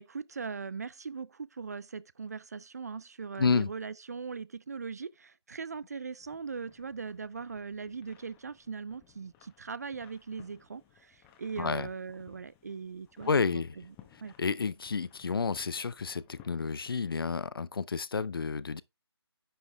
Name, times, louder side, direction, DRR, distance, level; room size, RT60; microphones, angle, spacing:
voice 1, 0.0-13.9 14.2-14.3, right 5 dB, 40° right, 0.3 m, -40 dB
sound 1, 6.2-17.0, left 10 dB, 10° left, 1.0 m, -60 dB
voice 2, 11.6-11.9 13.3-13.7 14.4-18.8, left 5 dB, 55° left, 0.6 m, -30 dB
10.0 x 5.1 x 3.4 m
figure-of-eight pair, 155°, 14 cm